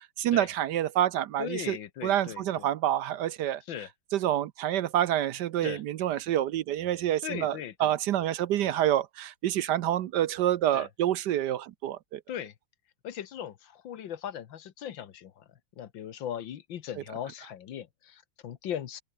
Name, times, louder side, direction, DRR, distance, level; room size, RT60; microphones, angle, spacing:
voice 1, 0.2-1.8 2.0-3.6 4.1-12.2, right 12 dB, 70° right, 1.2 m, -27 dB
voice 2, 1.4-2.7 3.6-3.9 5.6-5.8 7.2-7.9 10.7-10.9 12.3-12.5 13.0-15.5 15.8-19.0, left 10 dB, 80° left, 1.9 m, -38 dB
open air
omnidirectional pair, 2.0 m